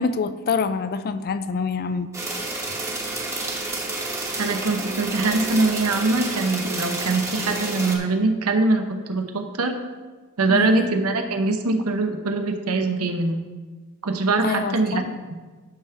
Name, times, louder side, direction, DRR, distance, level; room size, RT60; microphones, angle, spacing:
voice 1, 0.0-2.1 10.5-10.9 14.4-15.2, left 4 dB, 45° left, 12 dB, 0.4 m, -26 dB
sound 1, 2.1-8.0, right 2 dB, 15° right, 1.1 m, -30 dB
voice 2, 4.4-9.8 10.4-13.4 14.0-15.0, right 3 dB, 80° right, 5 dB, 0.8 m, -23 dB
10.5 x 3.5 x 5.6 m, 1.4 s
head